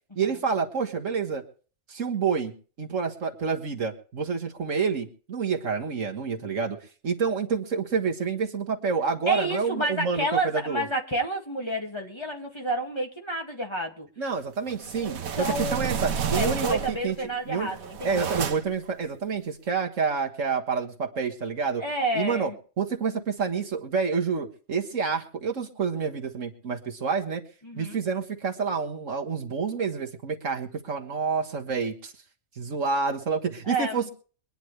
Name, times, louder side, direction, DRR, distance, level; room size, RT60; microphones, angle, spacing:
voice 1, 0.2-1.4 1.9-6.8 7.0-10.9 14.2-17.2 17.5-17.7 18.0-21.8 22.1-22.5 22.8-27.4 27.8-32.1 32.6-34.1, right 5 dB, 65° right, 2 dB, 1.9 m, -28 dB
voice 2, 9.3-14.1 15.0-18.4 21.8-22.5 27.6-28.0 33.7-34.1, right 1 dB, 20° left, 1 dB, 2.1 m, -30 dB
sound 1, 14.7-17.1 17.6-18.8, right 7 dB, 85° right, 1.4 m, -30 dB
23.5 x 10.0 x 3.2 m, 0.39 s
omnidirectional pair, 1.4 m